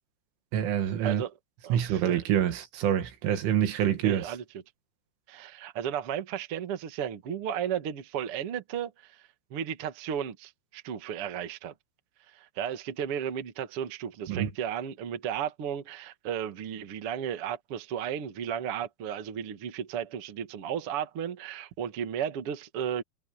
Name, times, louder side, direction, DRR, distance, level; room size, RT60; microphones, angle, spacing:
voice 1, 0.5-1.2 1.7-4.3 14.3-14.5, right 10 dB, 80° right, 4.6 m, -26 dB
voice 2, 1.6-2.2 4.0-4.4 5.3-11.7 12.3-23.0, right 9 dB, 55° right, 1.6 m, -34 dB
omnidirectional pair, 5.5 m